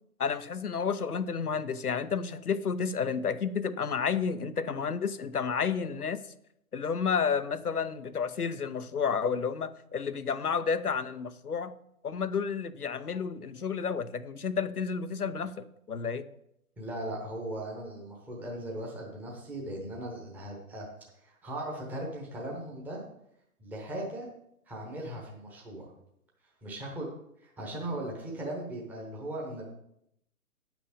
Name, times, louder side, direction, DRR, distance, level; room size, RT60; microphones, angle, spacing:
voice 1, 0.2-6.2 6.7-11.7 12.0-16.3, left 6 dB, 85° left, 0.7 m, -31 dB
voice 2, 16.8-20.9 21.2-23.0 23.6-24.3 24.7-25.9 26.6-27.1 27.4-29.7, right 1 dB, 5° right, 1.0 m, -38 dB
9.8 x 6.1 x 5.1 m
figure-of-eight pair, 135°, 44 cm